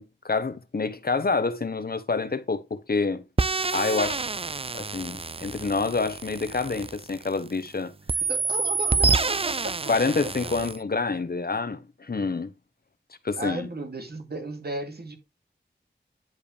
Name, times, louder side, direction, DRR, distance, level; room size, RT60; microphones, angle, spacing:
voice 1, 0.0-3.2 3.7-4.2 4.7-7.9 9.9-12.5 13.2-13.7, left 4 dB, 55° left, 1.0 m, -27 dB
sound 1, 3.4-7.7 8.1-10.8, right 4 dB, 30° right, 0.5 m, -28 dB
voice 2, 8.3-9.8 13.4-15.2, right 2 dB, 55° right, 2.6 m, -34 dB
10.5 x 4.8 x 3.3 m
cardioid pair, 45°, 19 cm